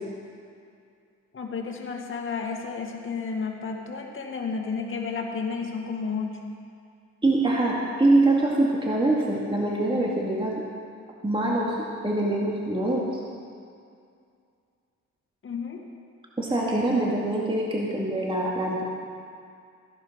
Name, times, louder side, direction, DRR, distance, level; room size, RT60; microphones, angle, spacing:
voice 1, 1.3-6.4 15.4-15.8, left 5 dB, 40° left, 1 dB, 2.0 m, -32 dB
voice 2, 7.2-10.6 11.2-11.8 12.0-13.2 16.4-18.8, right 2 dB, 15° right, -4 dB, 2.2 m, -24 dB
15.0 x 11.0 x 5.1 m, 2.3 s
cardioid pair, 90°, 30 cm